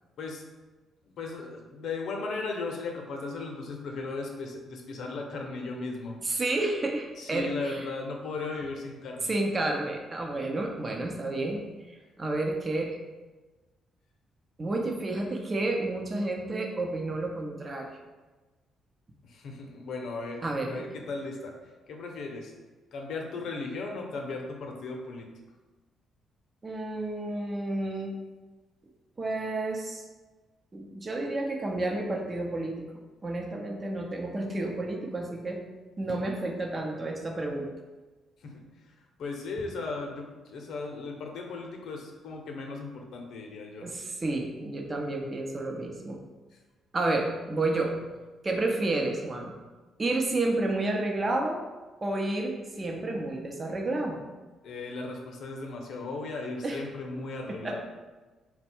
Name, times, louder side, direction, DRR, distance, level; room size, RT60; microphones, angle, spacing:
voice 1, 1.2-6.2 7.2-9.3 19.3-21.5 21.9-22.5 22.9-25.3 38.4-38.6 39.2-43.9 54.6-57.8, left 3 dB, 70° left, 1 dB, 0.7 m, -36 dB
voice 2, 6.2-7.9 9.2-11.7 12.2-13.0 14.6-17.9 20.4-20.9 26.6-28.2 29.2-30.0 30.7-32.9 33.2-35.6 36.0-37.7 43.8-46.2 46.9-48.0 48.4-49.5 50.0-51.6 52.0-54.2 56.6-56.8 57.5-57.8, right 2 dB, 30° right, 2 dB, 0.7 m, -30 dB
4.3 x 2.2 x 4.4 m, 1.2 s
cardioid pair, 90°, 0 cm